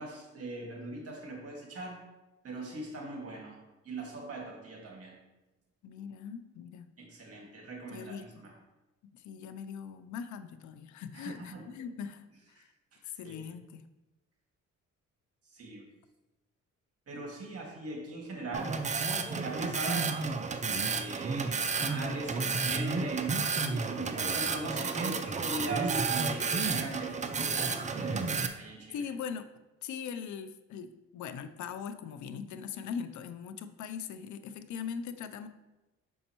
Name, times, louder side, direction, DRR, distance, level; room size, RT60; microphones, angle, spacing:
voice 1, 0.0-2.0 2.4-3.6 3.8-5.1 7.0-8.5 11.1-11.6 12.6-12.7 12.9-13.4 15.5-15.9 17.1-18.8 19.4-29.0, right 2 dB, 50° right, 0 dB, 1.8 m, -41 dB
voice 2, 5.8-6.9 7.9-8.4 9.1-12.7 13.0-13.9 28.9-29.5 29.8-35.5, left 7 dB, 75° left, 10 dB, 0.5 m, -41 dB
sound 1, 18.5-28.5, right 4 dB, 25° right, 0.5 m, -31 dB
6.3 x 5.5 x 2.9 m, 1.0 s
cardioid pair, 90°, 30 cm